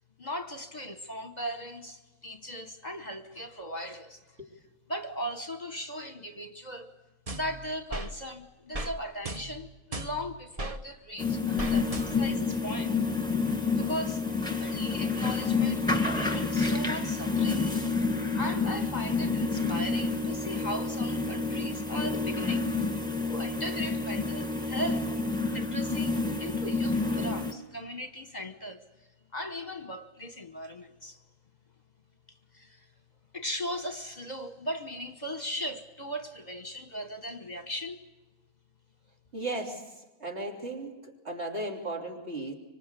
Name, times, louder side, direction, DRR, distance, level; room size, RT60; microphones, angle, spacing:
voice 1, 0.2-4.2 4.9-6.9 7.3-12.9 13.8-14.2 14.6-17.9 18.4-22.7 23.3-25.1 25.5-28.8 29.3-31.2 32.3-32.9 33.3-38.0, equal, 35° left, 8 dB, 1.2 m, -38 dB
sound 1, 7.3-8.1 8.7-8.9 9.2-10.8 11.6-12.4, right 1 dB, 30° right, 1.0 m, -37 dB
sound 2, 11.2-27.5, left 4 dB, 5° left, 2.0 m, -29 dB
voice 2, 39.3-39.8 40.2-42.5, right 2 dB, 50° right, 0 dB, 3.7 m, -35 dB
25.5 x 25.0 x 8.3 m, 1.1 s
omnidirectional pair, 1.4 m